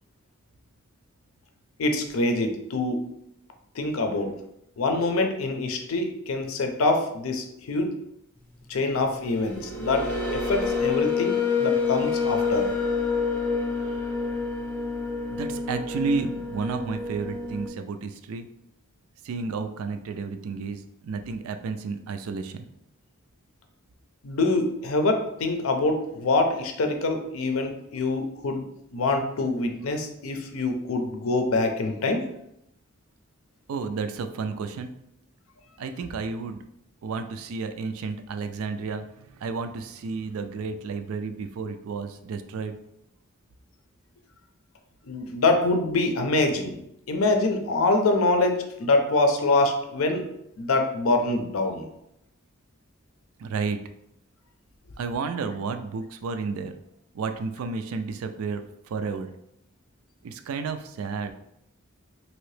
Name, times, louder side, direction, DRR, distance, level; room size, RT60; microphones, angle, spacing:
voice 1, 1.8-3.0 3.8-4.3 4.8-8.0 8.7-12.7 24.2-28.7 28.9-32.3 45.1-46.8 47.1-50.3 50.6-51.9, left 2 dB, 75° left, 5 dB, 0.5 m, -25 dB
sound 1, 9.3-17.7, left 5 dB, 10° left, 0.6 m, -27 dB
voice 2, 15.3-18.5 19.2-22.7 33.7-34.9 35.8-36.6 37.0-42.8 53.4-53.8 55.0-56.7 57.1-59.3 60.2-61.3, right 4 dB, 80° right, 8 dB, 0.3 m, -32 dB
2.9 x 2.7 x 3.2 m, 0.78 s
head